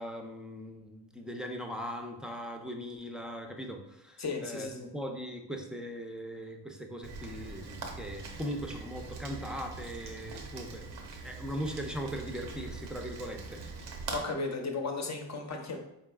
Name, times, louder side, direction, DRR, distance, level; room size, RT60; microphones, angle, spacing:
voice 1, 0.0-10.9 11.2-13.6, equal, ahead, 2 dB, 0.5 m, -39 dB
voice 2, 4.2-4.9 14.1-15.8, left 3 dB, 40° left, 3 dB, 0.8 m, -35 dB
Rain, 7.0-14.2, right 4 dB, 90° right, 0.7 m, -42 dB
4.1 x 3.6 x 2.3 m, 0.84 s
cardioid pair, 65°, 41 cm